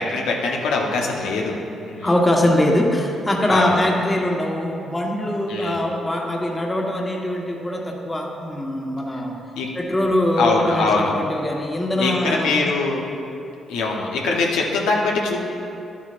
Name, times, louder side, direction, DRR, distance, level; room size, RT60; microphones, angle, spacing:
voice 1, 0.0-1.6 1.8-2.1 3.5-3.8 5.5-5.8 9.5-9.7 10.4-11.1 12.0-13.0 13.7-15.4, left 3 dB, 90° left, -1 dB, 1.0 m, -22 dB
voice 2, 2.0-9.3 9.7-12.7, left 1 dB, 15° left, -1 dB, 1.3 m, -22 dB
11.0 x 8.6 x 2.5 m, 2.7 s
cardioid pair, 75°, 0 cm